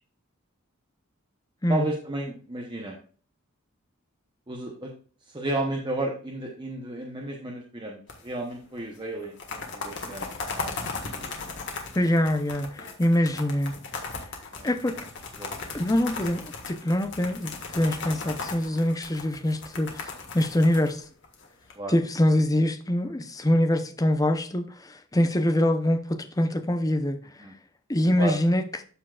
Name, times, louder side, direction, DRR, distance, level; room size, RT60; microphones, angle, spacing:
voice 1, 1.7-3.0 4.5-4.9 5.3-11.3 14.5-14.7 15.4-15.7 21.8-21.9 27.4-27.5 28.2-28.4, right 2 dB, 20° right, 0.8 m, -33 dB
sound 1, 8.1-8.5 8.8-8.9 9.2-21.7, left 4 dB, 60° left, 1.6 m, -37 dB
voice 2, 12.0-13.8 14.6-15.0 15.7-21.0 21.9-27.2 27.9-28.6, left 1 dB, 15° left, 0.6 m, -24 dB
13.5 x 4.5 x 2.4 m
head